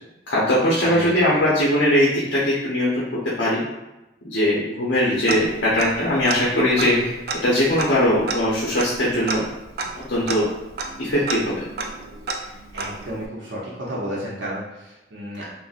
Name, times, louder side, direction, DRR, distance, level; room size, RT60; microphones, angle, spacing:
voice 1, 0.3-3.1 3.4-3.6 4.2-7.1 7.4-9.4 10.1-10.5 11.0-11.5, left 1 dB, 75° left, -7 dB, 0.7 m, -20 dB
voice 2, 0.8-1.5 5.0-5.3 6.8-7.1 12.4-15.5, equal, 85° right, -6 dB, 0.7 m, -33 dB
Tick-tock, 5.3-6.0 6.3-6.4 6.8-13.3, right 3 dB, 55° right, 0.3 m, -31 dB
3.8 x 2.1 x 2.4 m, 0.96 s
head